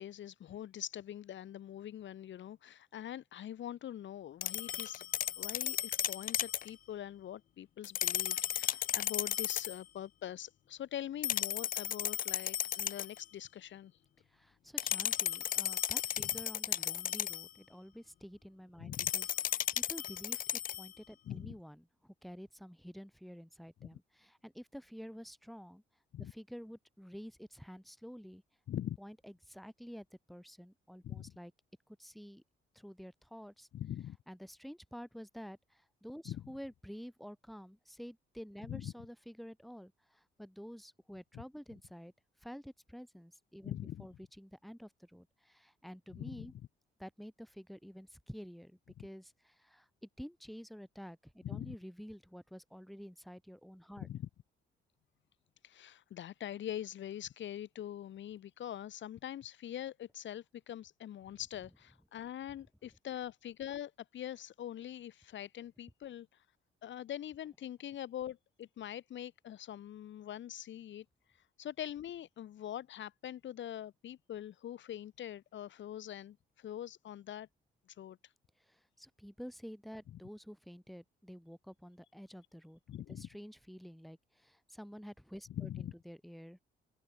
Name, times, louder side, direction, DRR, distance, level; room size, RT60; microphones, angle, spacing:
voice 1, 0.0-5.1 5.4-13.9 16.2-16.3 18.8-19.1 21.2-21.5 23.8-23.9 26.1-26.3 28.7-29.0 31.0-31.4 33.7-34.2 36.2-36.4 38.7-38.9 41.3-41.4 43.6-44.1 46.1-46.5 51.4-51.7 54.0-54.3 55.6-66.4 66.8-71.0 71.6-77.5 78.0-78.2 82.9-83.3 85.6-85.9, left 11 dB, 70° left, 3.0 m, -43 dB
sound 1, 4.4-6.7 7.8-9.8 11.2-13.2 14.8-17.5 18.9-20.9, left 11 dB, 45° left, 0.4 m, -35 dB
voice 2, 14.3-20.4 20.7-25.8 26.2-28.4 29.0-31.5 31.9-32.4 32.7-33.7 34.3-42.1 42.4-46.5 47.0-54.1 61.3-61.4 78.6-82.8 83.1-86.6, equal, ahead, 5.4 m, -50 dB
open air
cardioid pair, 90°, 20 cm